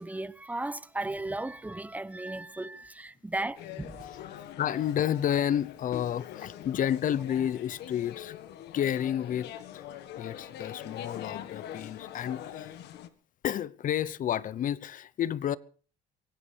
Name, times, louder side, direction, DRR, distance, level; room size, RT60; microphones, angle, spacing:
voice 1, 0.0-4.1, right 2 dB, 10° right, 0.9 m, -36 dB
sound 1, 3.6-13.1, left 11 dB, 80° left, 1.6 m, -43 dB
voice 2, 4.1-8.3 8.7-9.8 10.1-12.7 13.4-15.6, left 10 dB, 50° left, 0.8 m, -31 dB
24.0 x 17.0 x 3.5 m
cardioid pair, 110°, 17 cm